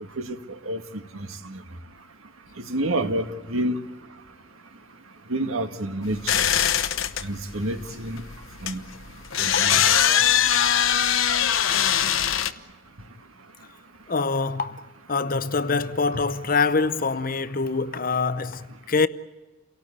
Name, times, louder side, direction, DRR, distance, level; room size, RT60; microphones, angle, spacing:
voice 1, 1.1-1.6 2.6-3.8 5.3-6.5 7.2-8.2 8.6-8.8 9.4-9.9 16.1-16.2, right 1 dB, 85° right, 1.8 m, -28 dB
sound 1, 6.1-12.5, left 9 dB, 70° left, 0.9 m, -22 dB
voice 2, 14.1-19.1, left 4 dB, 40° left, 0.8 m, -25 dB
29.0 x 18.0 x 8.7 m
head